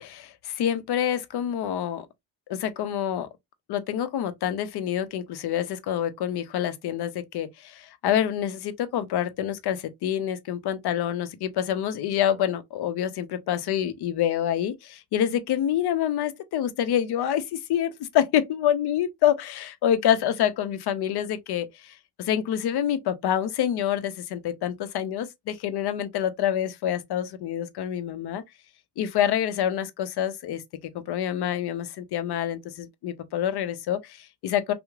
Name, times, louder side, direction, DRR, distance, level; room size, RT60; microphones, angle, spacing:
voice 1, 0.0-2.1 2.5-3.3 3.7-28.4 29.0-30.6 30.9-34.7, left 10 dB, 60° left, 0.6 m, -27 dB
2.9 x 2.1 x 2.3 m
supercardioid pair, 60°, 46 cm